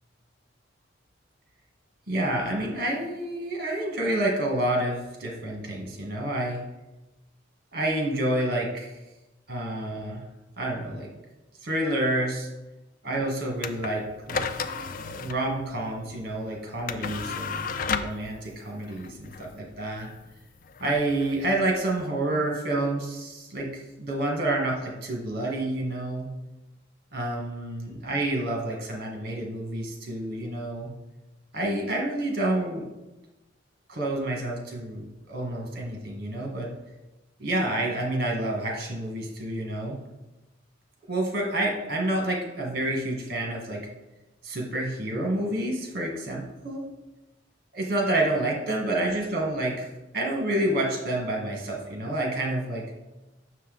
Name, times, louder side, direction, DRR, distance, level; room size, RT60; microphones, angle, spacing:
voice 1, 2.1-6.6 7.7-8.9 9.5-10.2 10.6-11.1 11.6-12.5 13.0-14.6 14.9-20.1 20.8-26.3 27.1-30.9 31.5-32.9 33.9-36.7 37.4-39.9 41.1-43.9 44.4-46.8 47.7-49.9 50.1-52.9, right 1 dB, 50° right, 0 dB, 1.4 m, -29 dB
sound 1, 13.6-22.1, left 5 dB, 45° left, 0.3 m, -34 dB
6.3 x 5.5 x 3.9 m, 1.0 s
head